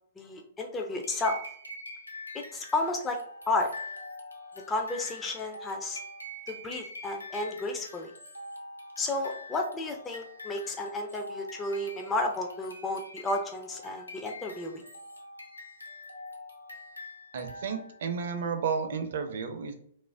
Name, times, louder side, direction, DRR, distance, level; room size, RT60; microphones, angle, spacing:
voice 1, 0.2-1.4 2.3-3.2 3.5-3.7 4.7-6.0 6.5-8.1 9.0-14.8, left 2 dB, 15° left, 2 dB, 0.3 m, -32 dB
sound 1, 1.0-18.1, left 1 dB, 90° left, 0.5 m, -45 dB
voice 2, 17.3-19.7, right 6 dB, 55° right, 7 dB, 0.4 m, -32 dB
2.4 x 2.0 x 3.2 m, 0.64 s
figure-of-eight pair, 115°, 0 cm